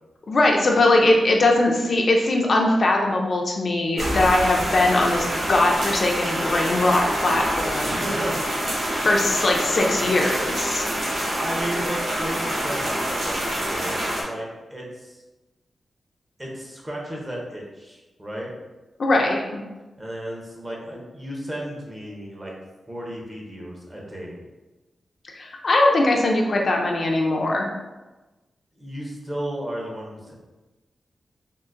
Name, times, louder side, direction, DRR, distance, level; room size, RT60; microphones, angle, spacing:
voice 1, 0.3-8.0 9.0-10.9 19.0-19.6 25.2-27.7, left 2 dB, 45° left, 0 dB, 0.4 m, -20 dB
sound 1, 4.0-14.2, right 1 dB, 55° right, 0.8 m, -26 dB
voice 2, 7.9-8.7 11.4-15.2 16.4-18.5 20.0-22.5 22.9-24.4 28.8-30.3, right 1 dB, 20° right, -2 dB, 0.7 m, -34 dB
3.7 x 2.4 x 2.4 m, 1.1 s
wide cardioid pair, 155°, 0 cm